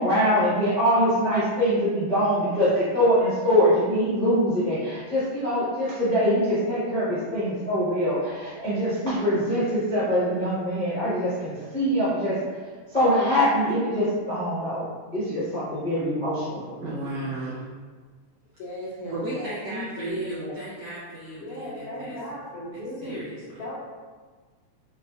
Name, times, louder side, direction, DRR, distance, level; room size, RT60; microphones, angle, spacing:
voice 1, 0.0-12.4 12.9-14.8 15.1-16.9, equal, 55° left, -13 dB, 0.4 m, -23 dB
voice 2, 16.7-17.7 19.1-22.2 23.0-23.6, right 1 dB, 80° right, -8 dB, 1.3 m, -35 dB
voice 3, 18.6-20.5 21.4-23.2 23.6-23.7, equal, 80° left, -8 dB, 1.3 m, -36 dB
6.4 x 2.2 x 2.4 m, 1.5 s
omnidirectional pair, 3.4 m